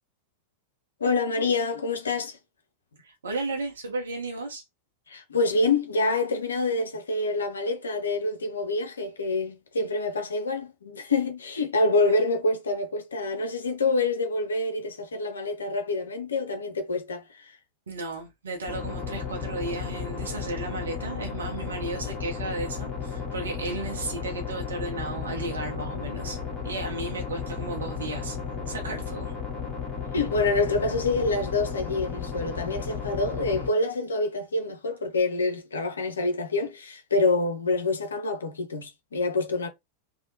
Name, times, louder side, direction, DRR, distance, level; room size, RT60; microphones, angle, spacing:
voice 1, 1.0-2.4 5.1-17.6 30.1-39.7, left 3 dB, 70° left, 0.5 m, -26 dB
voice 2, 3.0-4.6 17.9-28.4 28.7-29.3, right 2 dB, 70° right, 0.7 m, -34 dB
sound 1, 18.7-33.7, left 6 dB, 20° left, 1.2 m, -34 dB
2.8 x 2.1 x 2.6 m
figure-of-eight pair, 90°, 0 cm